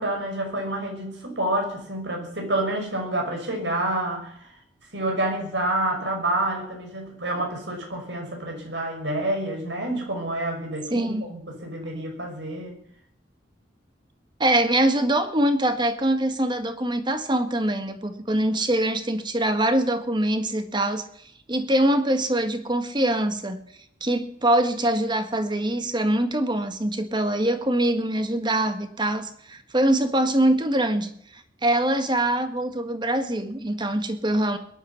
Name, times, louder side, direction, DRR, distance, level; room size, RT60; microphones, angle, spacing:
voice 1, 0.0-4.3 4.9-12.8, right 1 dB, 80° right, 2 dB, 5.8 m, -28 dB
voice 2, 10.9-11.3 14.4-21.0 21.5-23.6 24.0-34.6, right 1 dB, 25° right, 8 dB, 1.6 m, -23 dB
22.0 x 11.0 x 5.8 m, 0.68 s
head